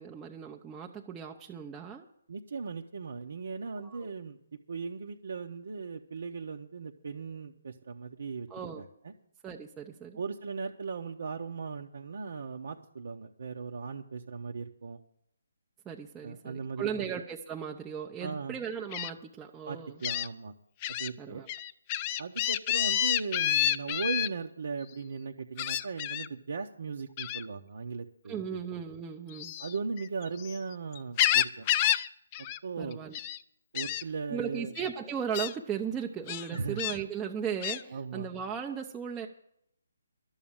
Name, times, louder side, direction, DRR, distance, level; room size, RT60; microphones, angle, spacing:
voice 1, 0.0-2.0 3.8-4.1 8.5-8.8 9.4-10.2 15.9-20.0 21.2-21.5 28.3-29.5 32.8-33.2 34.3-39.3, right 7 dB, 15° right, 0 dB, 0.7 m, -37 dB
voice 2, 2.3-4.4 4.7-9.1 10.1-15.0 16.2-17.1 18.2-18.6 19.6-20.5 20.9-21.4 22.2-28.4 29.6-31.7 32.6-33.1 33.7-34.7 36.5-36.8 37.9-38.3, right 4 dB, 65° right, 1 dB, 0.9 m, -38 dB
Gull seagull, 18.9-19.1 20.0-20.3 20.8-21.1 21.5-24.3 25.6-26.3 27.2-27.5 29.3-30.6 30.9-32.1 32.3-32.6 32.9-33.4 33.8-34.0 34.8-34.9 35.3-35.5 36.3-37.0 37.6-37.8, left 12 dB, 30° left, 0.4 m, -29 dB
11.5 x 7.2 x 8.9 m, 0.72 s
figure-of-eight pair, 150°, 0 cm